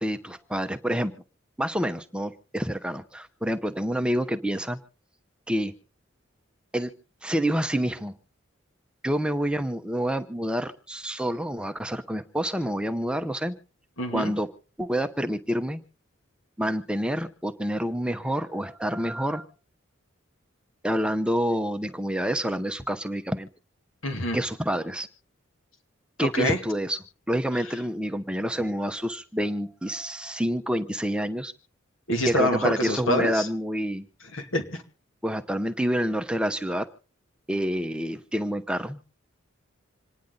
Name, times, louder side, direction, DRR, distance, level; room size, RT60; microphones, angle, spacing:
voice 1, 0.0-1.1 1.6-4.8 5.5-5.7 6.7-6.9 7.2-8.1 9.0-13.5 14.1-14.5 14.8-15.8 16.6-19.4 20.8-23.5 24.3-25.1 26.2-27.0 27.3-31.5 32.2-34.0 35.2-36.9 37.5-39.0, equal, 5° right, 9 dB, 0.8 m, -28 dB
voice 2, 14.0-14.3 24.0-24.4 26.2-26.6 32.1-33.5 34.3-34.8, left 1 dB, 80° left, 5 dB, 2.5 m, -26 dB
27.0 x 10.0 x 3.9 m, 0.40 s
head